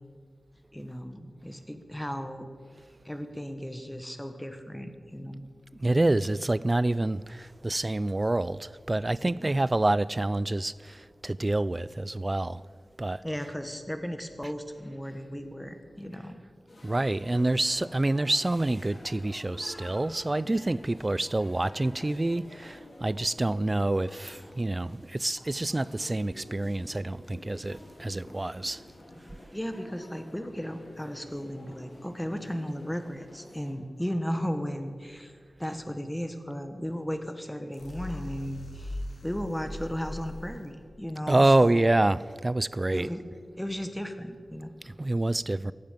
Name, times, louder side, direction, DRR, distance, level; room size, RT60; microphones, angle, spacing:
voice 1, 0.7-2.5 3.0-5.4 9.2-9.6 13.2-16.4 29.5-35.3 35.6-41.8 42.9-43.2 43.6-44.7, equal, 5° left, 1.4 m, -35 dB
voice 2, 5.8-12.6 13.0-13.2 16.8-28.8 41.3-43.1 44.9-45.7, right 2 dB, 25° right, 0.4 m, -27 dB
sound 1, 16.7-33.7, left 1 dB, 55° left, 4.1 m, -49 dB
sound 2, 37.7-40.7, left 1 dB, 80° left, 3.7 m, -40 dB
17.5 x 15.0 x 5.2 m
wide cardioid pair, 90°, 0 cm